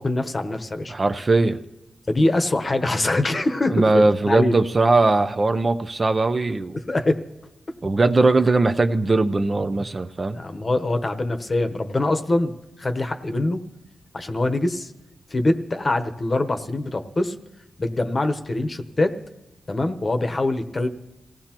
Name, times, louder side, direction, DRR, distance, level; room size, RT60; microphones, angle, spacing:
voice 1, 0.0-0.9 2.1-4.5 6.7-7.2 10.3-12.5 12.8-13.6 14.1-14.9 15.3-17.3 17.8-19.1 19.7-20.9, left 2 dB, 35° left, 7 dB, 1.0 m, -23 dB
voice 2, 0.9-1.6 3.7-6.8 7.8-10.4, right 3 dB, 35° right, 8 dB, 0.6 m, -20 dB
26.5 x 16.5 x 3.0 m, 0.94 s
wide cardioid pair, 95°, 0 cm